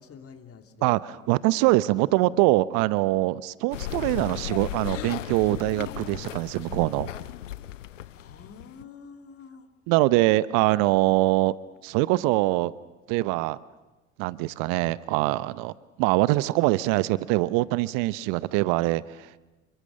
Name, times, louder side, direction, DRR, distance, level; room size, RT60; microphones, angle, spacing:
voice 1, 0.0-0.9 8.1-9.6, left 6 dB, 40° left, 7 dB, 3.0 m, -47 dB
voice 2, 0.8-7.1 9.9-11.5 11.8-12.7 13.1-13.6 14.2-19.4, right 19 dB, 60° right, 19 dB, 0.8 m, -23 dB
sound 1, 3.7-8.8, left 12 dB, 80° left, 0.8 m, -36 dB
29.0 x 24.0 x 6.5 m, 1.1 s
hypercardioid pair, 65°, 37 cm